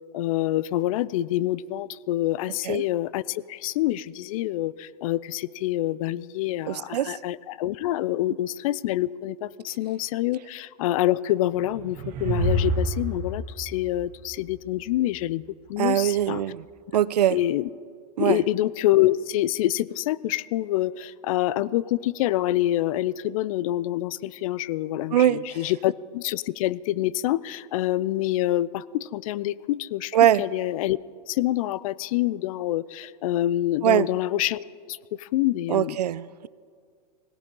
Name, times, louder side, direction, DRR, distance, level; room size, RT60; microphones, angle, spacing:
voice 1, 0.1-15.4 15.7-16.4 17.3-17.7 18.2-31.0 31.3-36.0, left 14 dB, 60° left, 20 dB, 0.5 m, -26 dB
voice 2, 6.7-7.2 15.8-16.6 16.9-17.4 18.2-18.4 25.1-25.4 30.1-30.4 33.8-34.1 35.7-36.5, right 12 dB, 80° right, 19 dB, 0.5 m, -22 dB
sound 1, 11.5-14.9, right 1 dB, 40° right, 1.9 m, -28 dB
20.5 x 17.5 x 3.8 m, 2.1 s
hypercardioid pair, 110°, 20 cm